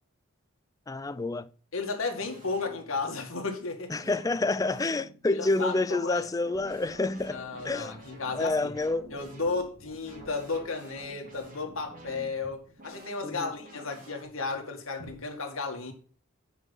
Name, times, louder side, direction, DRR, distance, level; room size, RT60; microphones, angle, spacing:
voice 1, 0.9-1.5 3.9-7.9 8.3-9.1 13.2-13.5, left 2 dB, 15° left, 0.4 m, -28 dB
sound 1, 1.3-1.5 2.1-3.3 3.9-14.2, right 1 dB, 40° right, 2.8 m, -50 dB
voice 2, 1.7-4.1 5.3-6.3 7.3-8.7 9.1-15.9, left 4 dB, 75° left, 2.0 m, -34 dB
sound 2, 6.5-14.1 15.0-15.2, right 1 dB, 85° right, 1.7 m, -54 dB
9.4 x 5.3 x 5.4 m
head